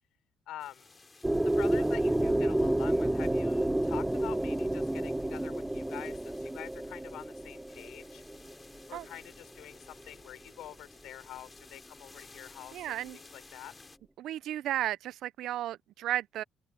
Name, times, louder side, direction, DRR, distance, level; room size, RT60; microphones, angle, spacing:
voice 1, 0.5-0.9 1.4-8.2 8.9-13.7, left 13 dB, 85° left, 5.0 m, -47 dB
sound 1, 0.6-14.0, left 3 dB, 20° left, 5.0 m, -56 dB
sound 2, 1.2-9.1, right 1 dB, 5° right, 0.5 m, -30 dB
voice 2, 12.7-13.2 14.2-16.4, right 12 dB, 75° right, 0.5 m, -34 dB
cardioid pair, 140°, 0 cm